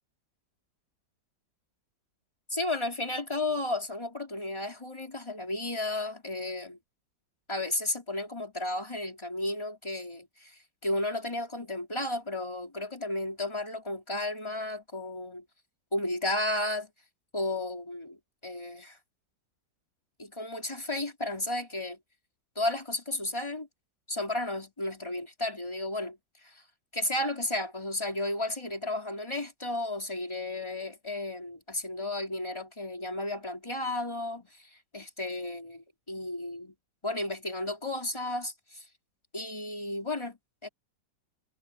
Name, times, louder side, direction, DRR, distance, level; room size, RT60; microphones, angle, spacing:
voice 1, 2.5-6.8 7.5-15.4 15.9-16.9 17.3-19.0 20.2-22.0 22.6-23.7 24.1-26.6 26.9-36.7 37.0-38.9 39.3-40.4 40.6-40.7, left 1 dB, 15° left, 3.9 m, -33 dB
omnidirectional pair, 2.0 m